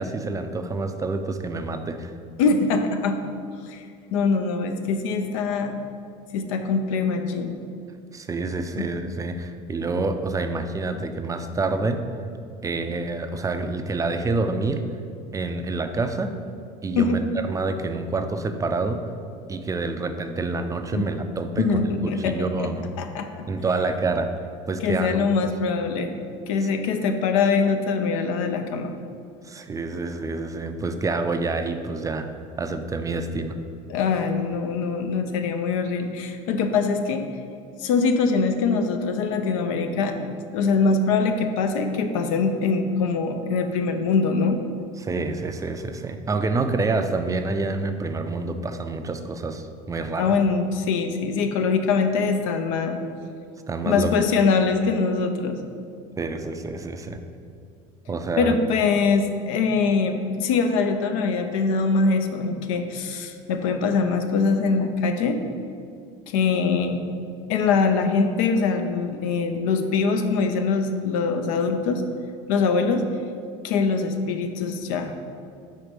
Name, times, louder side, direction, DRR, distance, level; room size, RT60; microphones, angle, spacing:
voice 1, 0.0-2.1 8.1-12.0 12.6-14.8 15.3-16.4 16.8-19.0 19.5-22.9 23.5-24.3 24.7-25.1 25.4-25.5 26.6-26.7 29.4-32.3 32.6-33.6 45.0-50.4 53.7-54.1 56.2-57.2 58.1-58.6, right 3 dB, 20° right, 7 dB, 0.4 m, -27 dB
voice 2, 2.4-3.2 3.7-3.8 4.1-5.8 6.3-7.6 8.8-8.9 17.0-17.2 20.9-21.1 21.6-22.7 23.0-23.4 24.8-26.1 26.5-28.9 33.9-37.3 37.8-44.6 50.2-53.0 53.8-55.6 58.4-65.4 66.3-67.0 67.5-72.0 72.5-73.0 73.6-75.1, left 4 dB, 85° left, 6 dB, 0.6 m, -23 dB
4.6 x 4.3 x 5.1 m, 2.4 s
supercardioid pair, 100°, 17 cm